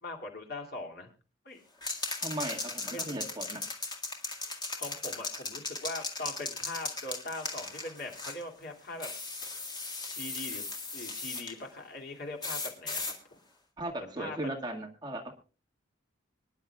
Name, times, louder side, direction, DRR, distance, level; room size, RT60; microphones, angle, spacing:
voice 1, 0.0-1.1 1.4-1.6 2.9-3.1 4.8-9.1 10.1-13.1 14.0-14.6, left 2 dB, 50° left, 2 dB, 2.7 m, -41 dB
sound 1, 1.8-8.4 9.0-11.5 12.4-13.2, left 3 dB, 20° left, 1.9 m, -37 dB
voice 2, 2.2-3.6 13.8-15.4, right 1 dB, 20° right, 0 dB, 1.9 m, -37 dB
25.5 x 10.5 x 2.4 m, 0.34 s
head